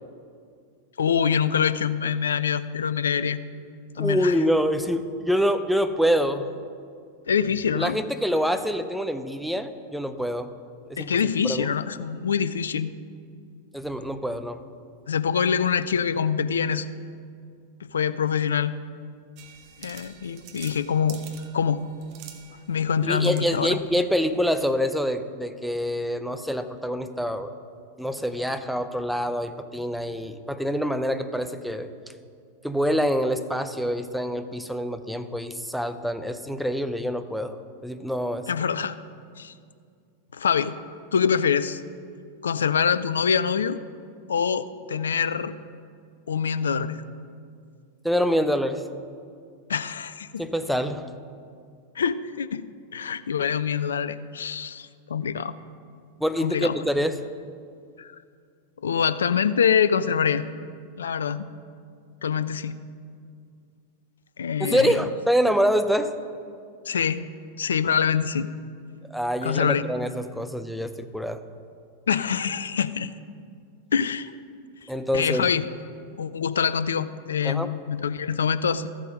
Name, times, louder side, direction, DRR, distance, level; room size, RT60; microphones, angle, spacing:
voice 1, 1.0-3.4 4.0-4.4 7.3-8.0 11.0-12.9 15.1-16.9 17.9-18.7 19.8-21.2 21.5-21.8 22.7-23.8 38.5-38.9 39.4-39.5 40.3-40.7 41.1-41.8 42.4-43.8 44.3-45.5 46.3-47.0 49.7-50.5 52.0-52.7 52.9-55.6 56.4-56.7 58.0-58.1 58.8-60.4 61.0-61.5 62.2-62.8 64.4-65.0 66.9-67.2 67.6-68.5 69.4-69.8 72.1-73.1 73.9-74.3 75.1-75.6 76.2-78.9, left 7 dB, 70° left, 14 dB, 0.4 m, -25 dB
voice 2, 4.0-6.5 7.7-10.5 10.9-11.1 11.4-11.7 13.7-14.6 23.0-27.5 28.0-31.9 32.6-37.6 37.8-38.5 48.0-48.9 50.4-51.1 56.2-57.2 64.6-66.1 69.1-71.4 74.9-75.5 77.4-77.7, equal, ahead, 9 dB, 0.6 m, -26 dB
sound 1, 19.4-24.7, right 8 dB, 45° right, 1.0 m, -48 dB
13.5 x 7.7 x 5.0 m, 2.3 s
figure-of-eight pair, 90°, 0 cm